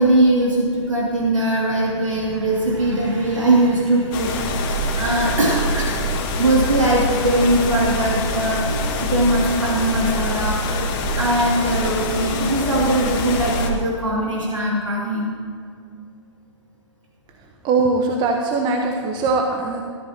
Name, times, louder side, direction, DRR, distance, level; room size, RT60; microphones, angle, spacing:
voice 1, 0.0-15.3, right 1 dB, 85° right, -4 dB, 2.6 m, -21 dB
sound 1, 4.1-13.7, left 1 dB, 45° left, 2.0 m, -24 dB
voice 2, 17.6-19.8, right 3 dB, 30° right, 2 dB, 1.1 m, -21 dB
17.5 x 13.5 x 3.0 m, 2.3 s
figure-of-eight pair, 115°, 16 cm